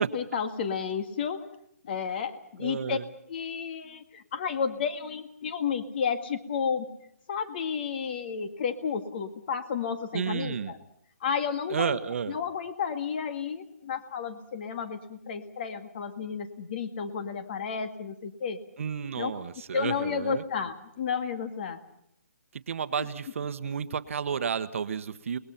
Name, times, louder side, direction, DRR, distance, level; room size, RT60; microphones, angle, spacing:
voice 1, 0.0-1.5 1.8-3.0 3.3-6.9 7.3-10.8 11.2-12.0 12.3-18.6 19.2-19.5 19.7-21.8 23.0-23.1, left 6 dB, 35° left, 9 dB, 2.0 m, -32 dB
voice 2, 2.6-3.0 10.1-10.7 11.7-12.4 18.8-20.4 22.5-25.4, right 7 dB, 55° right, 12 dB, 1.2 m, -31 dB
30.0 x 20.5 x 5.8 m, 0.73 s
hypercardioid pair, 160°, 9 cm